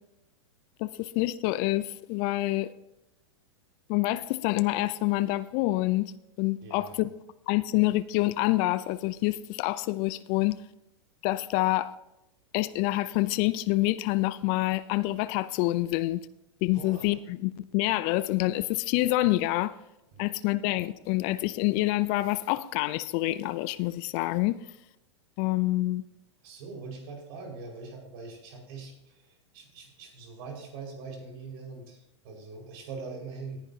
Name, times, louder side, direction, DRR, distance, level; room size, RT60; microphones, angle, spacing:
voice 1, 0.8-2.7 3.9-6.1 6.4-7.1 7.5-10.6 11.2-11.9 12.5-16.3 16.6-19.7 20.2-24.6 25.4-26.0, left 18 dB, 45° left, 0.5 m, -27 dB
voice 2, 6.6-7.0 16.7-17.1 20.1-20.2 26.4-33.6, right 4 dB, 55° right, 5.2 m, -42 dB
18.0 x 10.5 x 2.8 m
hypercardioid pair, 105°, 15 cm